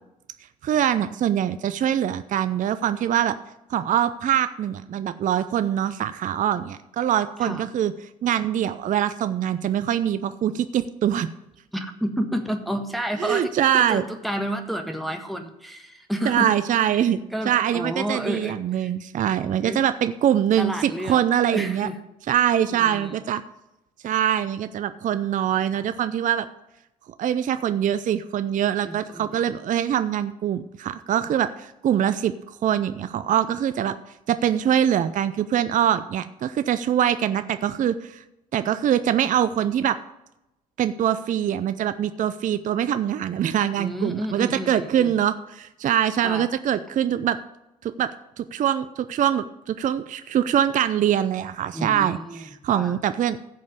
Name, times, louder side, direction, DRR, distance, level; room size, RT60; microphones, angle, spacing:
voice 1, 0.6-3.3 3.7-7.9 8.2-11.3 13.2-14.0 16.2-17.2 17.5-21.9 22.3-23.4 24.0-26.5 27.2-34.0 34.3-38.2 38.5-40.0 40.8-47.4 47.8-48.1 48.4-53.4, right 10 dB, 45° right, 12 dB, 0.5 m, -23 dB
voice 2, 11.7-16.5 16.8-17.0 17.3-18.9 19.6-19.8 20.6-21.2 21.5-22.0 22.7-23.2 28.8-29.4 43.8-45.2 46.2-46.5 51.7-52.4 52.7-53.0, equal, ahead, 4 dB, 1.5 m, -30 dB
15.5 x 5.3 x 5.2 m, 0.91 s
hypercardioid pair, 50°, 19 cm